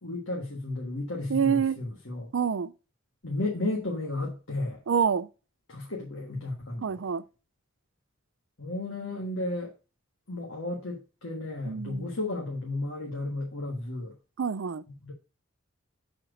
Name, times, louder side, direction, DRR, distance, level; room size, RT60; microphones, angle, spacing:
voice 1, 0.0-2.3 3.2-4.8 5.7-7.0 8.6-9.7 10.3-14.1 15.0-15.1, left 2 dB, 75° left, 1.5 m, -33 dB
voice 2, 1.3-1.8 2.3-2.7 4.9-5.3 6.8-7.2 11.7-12.1 14.4-14.8, right 6 dB, 65° right, 0.4 m, -26 dB
6.4 x 4.4 x 5.0 m
head